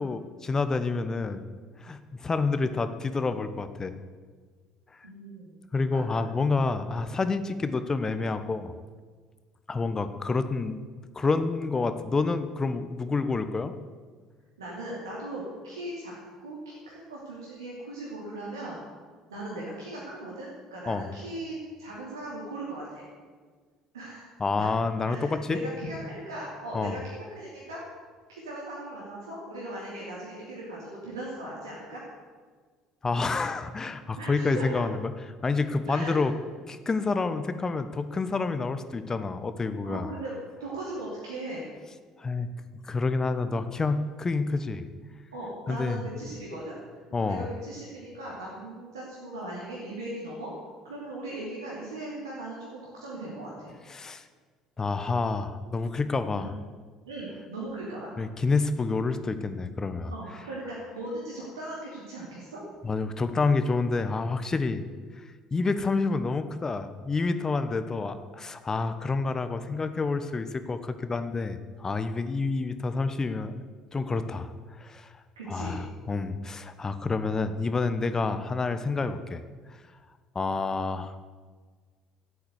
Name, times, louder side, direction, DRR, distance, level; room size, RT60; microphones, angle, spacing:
voice 1, 0.0-1.4 1.8-3.9 5.7-8.7 9.7-10.8 11.1-13.7 20.9-21.1 24.4-25.6 26.7-27.0 33.0-35.1 35.4-36.3 36.7-40.1 42.2-42.5 42.8-44.8 45.7-46.0 47.1-47.5 53.9-54.2 54.8-56.5 58.2-60.1 62.8-64.8 65.2-73.6 73.9-75.1 75.5-79.4 79.7-79.8 80.3-81.1, left 3 dB, 25° left, 10 dB, 1.0 m, -28 dB
voice 2, 5.0-5.5 5.9-6.2 14.6-16.1 16.4-18.8 19.3-23.0 23.9-24.3 24.6-24.7 25.0-27.8 28.3-32.0 34.2-34.9 35.9-36.1 39.8-40.3 40.6-41.7 45.3-46.7 47.2-50.5 50.8-53.7 56.3-56.4 57.1-58.1 60.1-62.6 75.4-75.8, right 1 dB, 80° right, -5 dB, 2.7 m, -38 dB
12.5 x 8.5 x 8.1 m, 1.5 s
figure-of-eight pair, 60°, 2 cm